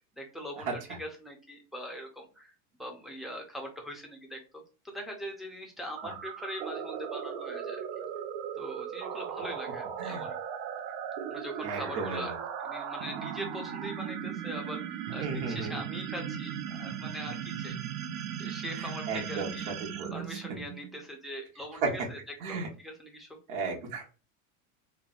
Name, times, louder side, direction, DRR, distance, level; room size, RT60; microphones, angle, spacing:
voice 1, 0.1-2.5 2.8-7.8 8.6-10.3 11.3-12.3 12.6-14.8 15.1-17.8 18.4-19.7 20.1-22.2 22.5-23.3, equal, ahead, 1 dB, 0.5 m, -42 dB
sound 1, 5.9-21.1, right 8 dB, 60° right, 0.5 m, -37 dB
voice 2, 11.6-12.2 15.2-15.8 18.8-19.5 19.8-20.6 21.8-21.9 22.4-22.7 23.5-24.1, right 4 dB, 80° right, 0 dB, 1.1 m, -35 dB
3.2 x 2.1 x 2.4 m, 0.33 s
supercardioid pair, 130°, 43 cm